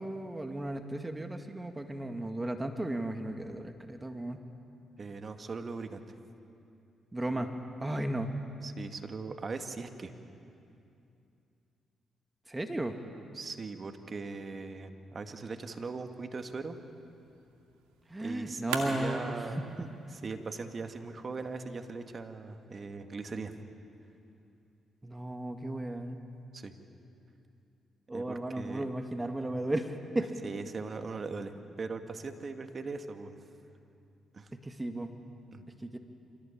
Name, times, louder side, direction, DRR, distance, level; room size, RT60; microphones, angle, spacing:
voice 1, 0.0-4.5 7.1-7.5 7.8-8.3 12.5-13.0 18.1-19.9 25.0-26.2 28.1-30.3 34.5-35.1 35.7-36.0, right 1 dB, 20° right, 6 dB, 1.9 m, -35 dB
voice 2, 5.0-6.2 7.3-7.5 8.6-10.1 13.3-16.8 18.2-23.6 26.5-26.7 28.1-28.8 30.4-33.4 34.3-34.5 35.5-35.9, right 4 dB, 45° right, 6 dB, 2.0 m, -40 dB
sound 1, 16.3-22.3, right 5 dB, 85° right, 2.2 m, -44 dB
25.5 x 17.5 x 8.9 m, 2.6 s
hypercardioid pair, 45°, 0 cm